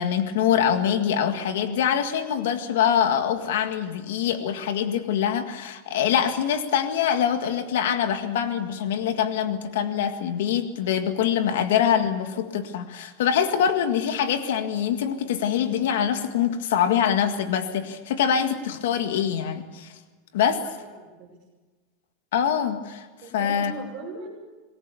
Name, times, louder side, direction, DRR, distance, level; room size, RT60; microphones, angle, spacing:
voice 1, 0.0-19.9 20.3-20.6 22.3-23.1 23.3-23.7, left 8 dB, 75° left, 8 dB, 1.8 m, -24 dB
voice 2, 20.6-21.4 23.2-24.3, right 3 dB, 35° right, -6 dB, 7.0 m, -39 dB
27.0 x 20.0 x 7.1 m, 1.3 s
supercardioid pair, 180°, 0 cm